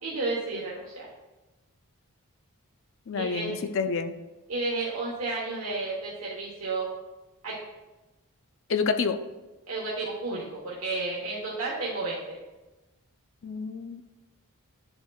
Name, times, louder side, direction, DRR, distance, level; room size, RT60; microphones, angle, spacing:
voice 1, 0.0-1.1 3.1-3.6 4.5-6.9 7.4-7.5 9.7-12.4, right 3 dB, 75° right, -6 dB, 1.3 m, -32 dB
voice 2, 3.1-4.1 8.7-9.2 13.4-14.0, left 5 dB, 60° left, 8 dB, 0.5 m, -28 dB
10.5 x 5.1 x 2.4 m, 1.1 s
head